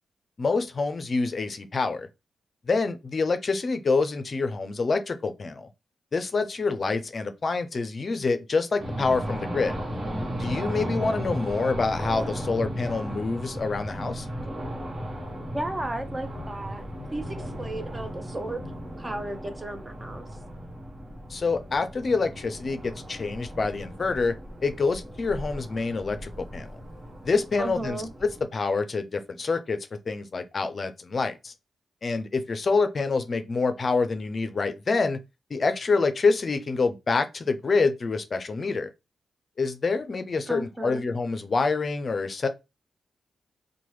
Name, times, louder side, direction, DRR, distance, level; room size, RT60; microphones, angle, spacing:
voice 1, 0.4-2.1 2.7-5.7 6.1-9.7 10.4-14.3 21.3-24.3 24.6-26.7 27.2-29.8 30.1-31.5 32.0-35.2 35.5-38.9 39.6-42.5, left 4 dB, 50° left, 0.4 m, -26 dB
sound 1, 8.8-28.4, equal, 50° right, 1.0 m, -36 dB
voice 2, 15.5-18.6 19.0-20.3 27.6-28.1 40.5-41.0, right 1 dB, 25° right, 0.6 m, -34 dB
3.0 x 2.1 x 3.0 m
cardioid pair, 65°, 0 cm